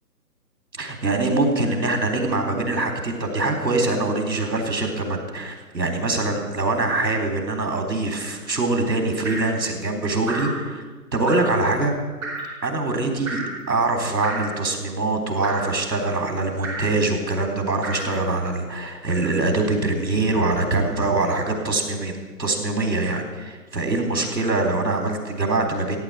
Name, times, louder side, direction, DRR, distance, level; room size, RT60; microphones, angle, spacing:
voice 1, 0.8-10.8 11.1-11.9 12.6-22.1 22.4-26.0, right 2 dB, 80° right, 3 dB, 3.7 m, -23 dB
Drip, 9.2-9.6 10.2-10.6 11.3-11.6 12.2-12.5 13.3-13.6 14.2-14.6 15.4-15.8 16.6-17.0 17.8-18.1 19.1-19.4 20.3-20.5, right 2 dB, 15° right, 5.2 m, -32 dB
14.5 x 9.2 x 7.7 m, 1.4 s
figure-of-eight pair, 165°, 50 cm